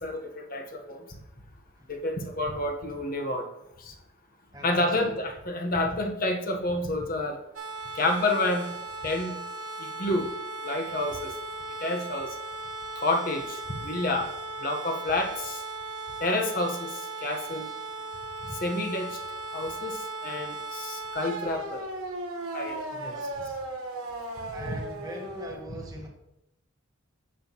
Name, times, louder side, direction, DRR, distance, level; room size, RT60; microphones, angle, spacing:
voice 1, 0.0-1.0 1.9-3.4 4.6-7.4 7.9-8.7 9.0-9.4 9.8-10.3 10.6-11.3 11.8-12.3 13.0-14.3 14.6-15.6 16.2-16.9 17.2-17.7 18.6-19.1 19.5-20.0 20.2-21.8 22.5-22.8 23.1-23.2 24.7-24.8, left 2 dB, 40° left, 3 dB, 1.1 m, -29 dB
voice 2, 4.5-5.2 22.9-23.4 24.5-26.1, right 1 dB, 15° right, 0 dB, 1.3 m, -41 dB
sound 1, 7.6-25.5, right 2 dB, 85° right, 1.3 m, -37 dB
9.8 x 7.3 x 3.0 m, 0.86 s
head